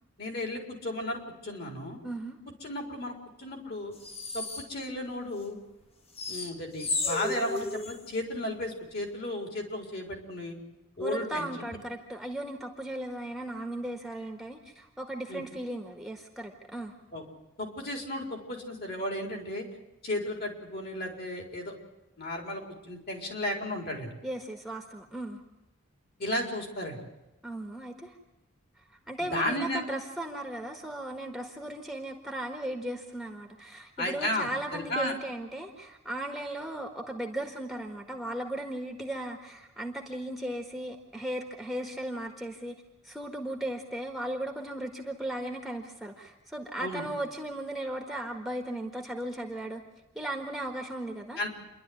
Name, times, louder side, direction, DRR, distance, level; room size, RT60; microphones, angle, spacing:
voice 1, 0.2-2.0 2.6-3.1 3.4-3.9 4.3-5.6 6.3-10.6 11.0-11.8 15.3-15.4 17.1-17.2 17.6-19.6 20.0-21.7 22.2-24.1 26.2-27.0 29.3-29.8 34.0-35.1 46.8-47.0 51.4-51.5, left 1 dB, 50° left, 2 dB, 4.4 m, -34 dB
voice 2, 2.0-2.4 11.0-16.9 24.2-25.4 27.4-28.1 29.1-42.8 43.0-49.8 50.1-51.4, right 1 dB, ahead, 2 dB, 1.5 m, -36 dB
sound 1, 4.0-4.7 6.2-8.0, left 3 dB, 30° left, 1.5 m, -33 dB
28.0 x 12.0 x 9.6 m, 1.0 s
head